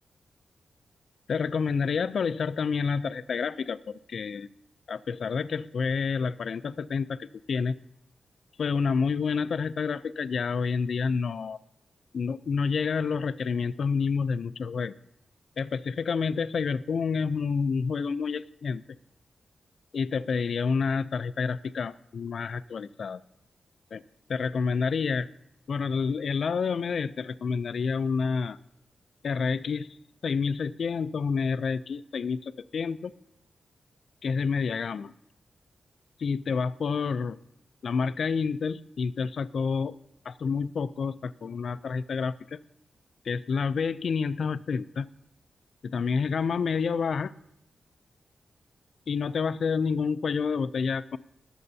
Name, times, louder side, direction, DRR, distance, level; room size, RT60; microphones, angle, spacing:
voice 1, 1.3-4.5 4.9-7.7 8.6-11.6 12.1-14.9 15.6-18.8 19.9-23.2 23.9-24.0 24.3-25.3 25.7-28.6 29.2-30.0 30.2-33.1 34.2-35.1 36.2-37.4 37.8-39.9 40.3-42.6 43.3-45.1 45.8-47.3 49.1-51.2, left 5 dB, 65° left, 15 dB, 0.4 m, -28 dB
22.5 x 7.8 x 2.7 m, 0.78 s
wide cardioid pair, 130°, 0 cm